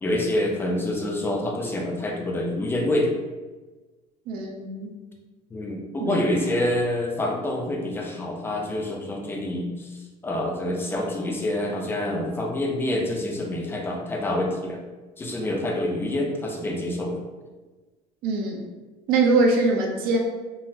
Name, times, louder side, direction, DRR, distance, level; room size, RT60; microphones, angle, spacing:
voice 1, 0.0-3.1 5.5-9.9 10.2-14.8 15.2-17.2, left 1 dB, 15° left, 0 dB, 0.4 m, -27 dB
voice 2, 4.3-4.9 6.0-6.2 18.2-18.6 19.1-20.2, right 3 dB, 65° right, 1 dB, 0.6 m, -22 dB
3.8 x 2.0 x 2.6 m, 1.2 s
cardioid pair, 150°, 17 cm